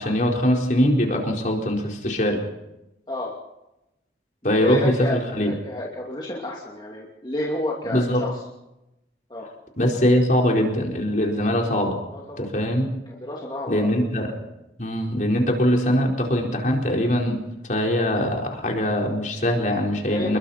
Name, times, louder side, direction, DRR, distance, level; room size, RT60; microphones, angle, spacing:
voice 1, 0.0-2.4 4.4-5.5 7.8-8.2 9.8-12.0 12.4-12.9 13.7-14.3 14.8-17.4 17.6-20.4, equal, 45° left, 0 dB, 4.7 m, -22 dB
voice 2, 4.6-8.4 9.3-9.5 12.1-12.5 13.1-13.9 20.1-20.4, left 1 dB, 25° left, -3 dB, 2.7 m, -30 dB
28.5 x 22.5 x 4.4 m, 0.91 s
head